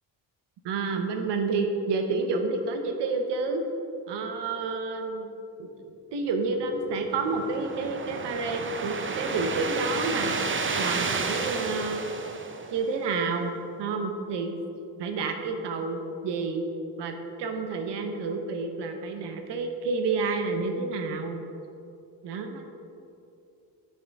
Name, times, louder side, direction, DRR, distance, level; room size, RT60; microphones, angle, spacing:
voice 1, 0.6-3.6 4.1-5.3 5.6-12.1 12.7-13.5 13.8-14.6 15.0-16.6 17.0-21.4 22.2-22.6, right 3 dB, 75° right, 5 dB, 1.0 m, -29 dB
sound 1, 6.6-13.2, right 4 dB, 30° right, 0.7 m, -32 dB
9.2 x 6.4 x 3.6 m, 2.7 s
cardioid pair, 75°, 42 cm